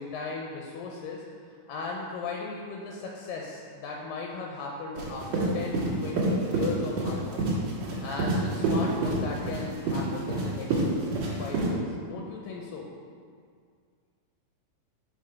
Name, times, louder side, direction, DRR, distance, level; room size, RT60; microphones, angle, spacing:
voice 1, 0.0-7.4 8.0-12.8, left 4 dB, 85° left, -1 dB, 2.3 m, -37 dB
sound 1, 4.9-11.7, right 2 dB, 55° right, 2.4 m, -28 dB
5.4 x 4.9 x 5.7 m, 2.1 s
omnidirectional pair, 4.0 m